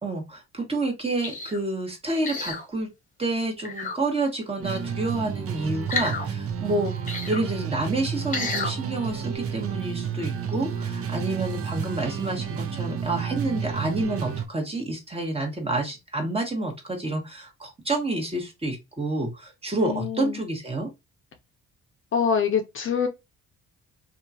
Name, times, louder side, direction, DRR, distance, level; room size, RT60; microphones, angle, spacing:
voice 1, 0.0-2.9 3.2-6.9 7.3-20.9, right 2 dB, 20° right, 1.3 m, -29 dB
sound 1, 1.2-1.6 2.2-2.7 3.6-4.0 5.9-6.3 7.1-7.4 8.3-8.7 9.3-9.4, left 4 dB, 25° left, 1.0 m, -30 dB
sound 2, 4.6-14.5, right 7 dB, 50° right, 0.7 m, -31 dB
voice 2, 19.8-20.4 22.1-23.1, left 7 dB, 45° left, 0.7 m, -25 dB
2.8 x 2.4 x 2.7 m
cardioid pair, 90°, 30 cm